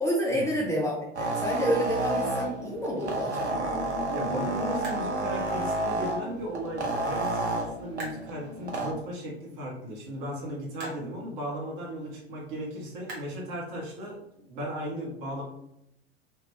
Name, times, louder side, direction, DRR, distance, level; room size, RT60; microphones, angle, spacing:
voice 1, 0.0-3.6, equal, 10° left, -3 dB, 0.5 m, -29 dB
sound 1, 0.9-14.1, right 1 dB, 35° right, 1.3 m, -50 dB
sound 2, 1.1-8.9, right 2 dB, 90° right, 0.7 m, -30 dB
voice 2, 4.1-15.4, equal, 50° right, -2 dB, 1.4 m, -36 dB
3.4 x 2.8 x 3.2 m, 0.80 s
figure-of-eight pair, 85°, 33 cm